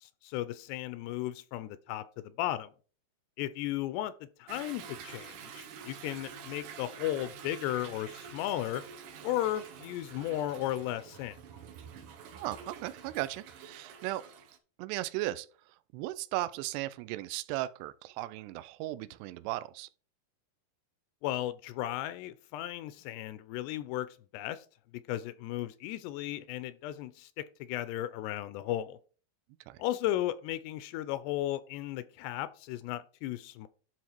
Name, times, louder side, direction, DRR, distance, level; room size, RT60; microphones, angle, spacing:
voice 1, 0.0-2.7 3.4-4.1 4.4-8.8 9.2-11.4 21.2-24.7 25.1-27.3 27.6-29.0 29.8-33.7, left 13 dB, 85° left, 2.6 m, -35 dB
Toilet flush / Drip / Trickle dribble, 4.5-14.6, right 6 dB, 70° right, 2.1 m, -48 dB
voice 2, 12.4-14.2 14.8-19.9 29.7-29.8, right 16 dB, 85° right, 2.7 m, -36 dB
12.0 x 4.0 x 4.4 m
omnidirectional pair, 4.9 m